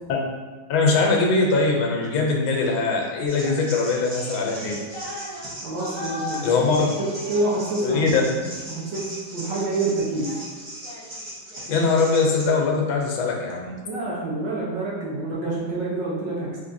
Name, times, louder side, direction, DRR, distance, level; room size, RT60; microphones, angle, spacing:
voice 1, 0.7-4.7 6.4-6.9 7.8-8.2 11.7-13.8, left 4 dB, 80° left, 0 dB, 1.4 m, -21 dB
sound 1, 3.3-12.5, equal, 35° right, 0.4 m, -36 dB
voice 2, 5.6-6.7 7.0-8.4 8.7-9.0 9.3-10.3 13.9-16.6, right 2 dB, 70° right, -5 dB, 1.4 m, -27 dB
3.7 x 3.2 x 2.6 m, 1.4 s
omnidirectional pair, 2.2 m